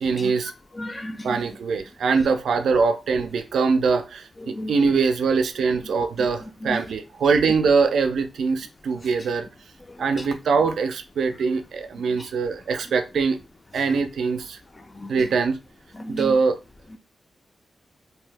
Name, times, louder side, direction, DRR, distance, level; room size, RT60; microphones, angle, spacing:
voice 1, 0.0-0.5 1.2-9.5 10.0-13.4 13.7-14.6 15.1-15.6 16.1-16.6, right 5 dB, 85° right, 0.4 m, -23 dB
voice 2, 0.7-1.4 4.4-4.7 6.2-6.3 6.6-6.8 9.9-10.3 12.2-12.3 14.8-15.3 15.9-16.4, left 1 dB, 30° left, 0.4 m, -34 dB
2.7 x 2.0 x 3.2 m
cardioid pair, 85°, 0 cm